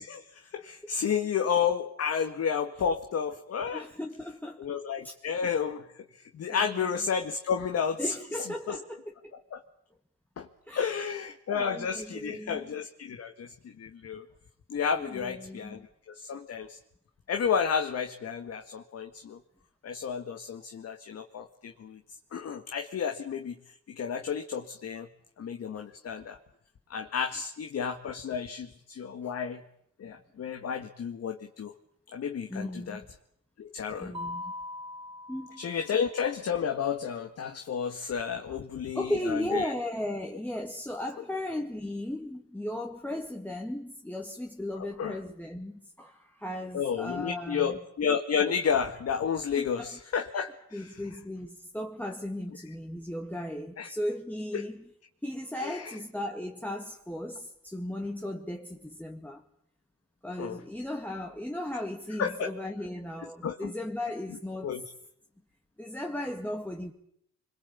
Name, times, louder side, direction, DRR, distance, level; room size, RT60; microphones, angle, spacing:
voice 1, 0.0-3.8 4.6-5.9 6.3-8.1 8.7-8.8 9.5-9.6 10.4-10.5 10.7-14.2 14.7-15.8 16.1-16.8 17.3-19.4 19.8-22.0 22.3-23.6 23.9-25.1 25.4-26.4 26.9-29.6 30.0-31.7 32.1-33.0 33.6-34.1 35.6-39.7 44.8-45.2 46.7-50.9 53.8-53.9 54.5-54.6 55.6-55.9 60.4-60.6 62.2-62.5 63.4-63.7 64.6-64.8, left 7 dB, 55° left, 1.9 m, -31 dB
voice 2, 3.7-4.7 5.0-5.1 6.5-6.8 8.0-9.3 10.7-11.0 11.5-12.7 14.9-15.9 32.5-33.1 34.0-34.4 35.3-35.6 38.5-38.6 38.9-47.8 49.6-49.9 50.7-54.8 55.2-59.4 60.2-64.7 65.8-66.9, left 1 dB, 5° left, 2.0 m, -36 dB
Mallet percussion, 34.1-36.2, left 2 dB, 15° right, 1.7 m, -41 dB
25.5 x 22.0 x 8.5 m
cardioid pair, 90°, 30 cm